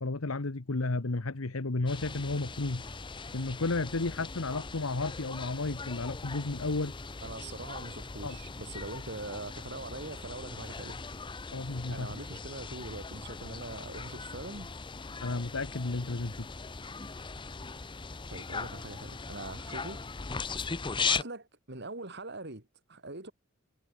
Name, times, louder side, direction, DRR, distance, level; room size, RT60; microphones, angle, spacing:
voice 1, 0.0-2.8 3.3-6.9 8.2-8.4 11.5-12.1 15.2-16.5, left 3 dB, 85° left, 1.2 m, -32 dB
sound 1, 1.9-21.2, left 4 dB, 25° left, 0.7 m, -39 dB
voice 2, 7.2-11.0 11.9-14.7 18.3-20.0 20.7-23.3, right 2 dB, 55° right, 3.3 m, -42 dB
head